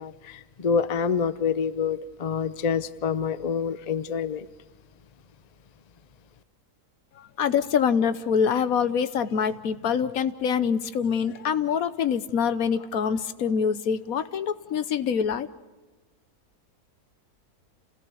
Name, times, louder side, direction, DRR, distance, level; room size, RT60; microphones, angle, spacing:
voice 1, 0.0-4.5, left 6 dB, 35° left, 14 dB, 0.7 m, -27 dB
voice 2, 7.4-15.5, left 7 dB, 70° left, 13 dB, 1.3 m, -25 dB
28.5 x 17.5 x 7.1 m, 1.3 s
omnidirectional pair, 1.6 m